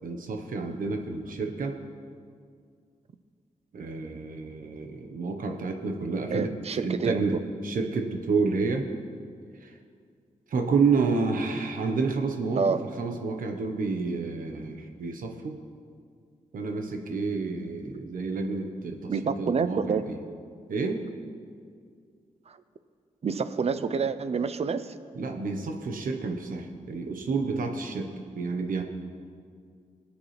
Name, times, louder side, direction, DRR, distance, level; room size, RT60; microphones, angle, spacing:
voice 1, 0.0-1.7 3.7-8.9 9.6-9.8 10.5-15.6 16.5-20.2 20.7-21.0 25.1-28.8, right 4 dB, 90° right, 3 dB, 1.1 m, -29 dB
voice 2, 6.3-7.4 12.6-12.9 19.1-20.0 22.5-22.6 23.2-24.9, right 5 dB, 50° right, 12 dB, 0.6 m, -28 dB
22.5 x 8.6 x 3.3 m, 2.1 s
wide cardioid pair, 125°, 14 cm